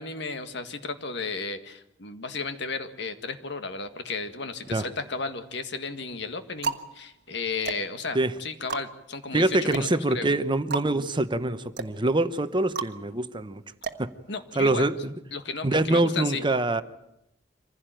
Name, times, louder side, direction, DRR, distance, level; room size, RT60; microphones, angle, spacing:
voice 1, 0.0-9.9 10.1-10.3 14.3-14.9 15.3-16.4, left 4 dB, 70° left, 9 dB, 1.9 m, -34 dB
sound 1, 4.7-5.4 6.1-14.8, right 5 dB, 60° right, 1.4 m, -37 dB
voice 2, 9.3-13.6 14.0-14.1 14.6-15.1 15.6-16.8, right 2 dB, 25° right, 12 dB, 0.9 m, -25 dB
25.5 x 16.0 x 9.1 m, 0.82 s
head